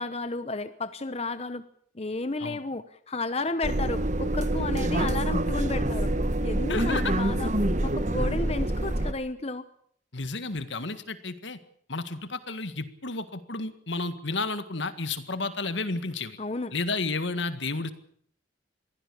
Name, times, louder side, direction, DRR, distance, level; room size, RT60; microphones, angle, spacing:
voice 1, 0.0-1.6 1.9-6.1 6.4-7.5 7.8-9.6 16.4-16.7, left 2 dB, 35° left, 11 dB, 0.9 m, -32 dB
sound 1, 3.6-9.1, right 1 dB, 40° right, 1.3 m, -26 dB
voice 2, 6.7-7.1 10.1-11.6 11.9-16.4 16.7-17.9, left 3 dB, 70° left, 11 dB, 1.9 m, -32 dB
23.0 x 16.0 x 8.5 m, 0.63 s
head